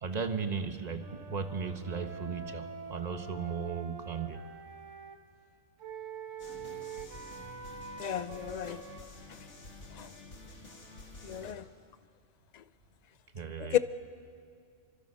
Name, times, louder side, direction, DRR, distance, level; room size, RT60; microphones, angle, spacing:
voice 1, 0.0-4.4 13.3-13.8, right 5 dB, 35° right, 8 dB, 1.2 m, -36 dB
Wind instrument woodwind instrument, 1.0-5.2 5.8-9.0, right 5 dB, 80° right, 1.6 m, -45 dB
sound 1, 6.4-11.5, left 2 dB, 65° left, 2.5 m, -49 dB
voice 2, 8.0-8.8 9.3-9.4 9.9-10.1 11.2-11.7 12.5-12.6 13.6-13.8, left 11 dB, 45° left, 14 dB, 0.6 m, -33 dB
28.0 x 24.5 x 5.5 m, 2.4 s
omnidirectional pair, 1.3 m